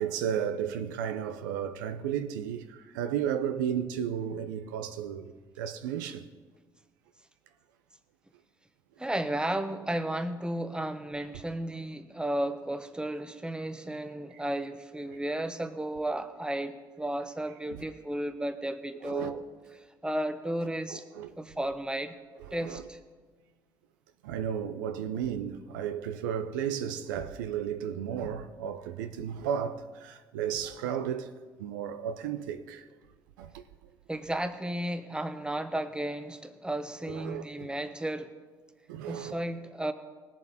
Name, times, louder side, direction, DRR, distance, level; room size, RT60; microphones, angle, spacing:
voice 1, 0.0-6.3 14.3-14.4 15.1-15.2 17.7-17.8 19.0-19.3 20.9-21.3 22.5-22.8 24.2-31.3 31.6-32.9 33.4-33.6 37.1-37.7 38.9-39.4, right 9 dB, 85° right, 0.6 m, -34 dB
voice 2, 9.0-19.4 20.0-21.0 21.4-22.1 22.5-23.0 34.1-38.3 39.1-39.9, right 1 dB, 10° right, 1.1 m, -33 dB
19.0 x 7.2 x 4.2 m
hypercardioid pair, 55°, 10 cm